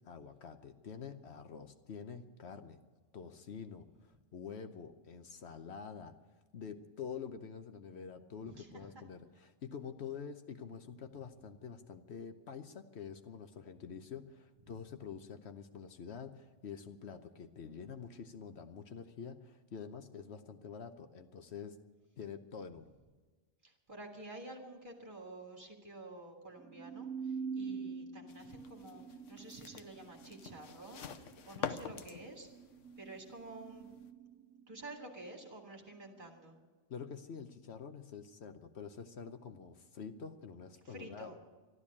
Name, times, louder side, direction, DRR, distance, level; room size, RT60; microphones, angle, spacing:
voice 1, 0.0-2.8 3.1-6.1 6.5-21.8 22.2-22.9 36.9-41.3, left 6 dB, 65° left, 9 dB, 1.0 m, -47 dB
voice 2, 8.5-8.8 23.6-29.0 29.3-32.5 33.0-33.9 34.7-36.6 40.8-41.4, right 2 dB, 40° right, 1 dB, 2.3 m, -50 dB
sound 1, 26.6-35.5, right 5 dB, 85° right, 1.3 m, -45 dB
sound 2, 28.3-34.1, left 7 dB, 85° left, 1.2 m, -47 dB
12.5 x 12.5 x 8.5 m, 1.3 s
omnidirectional pair, 1.3 m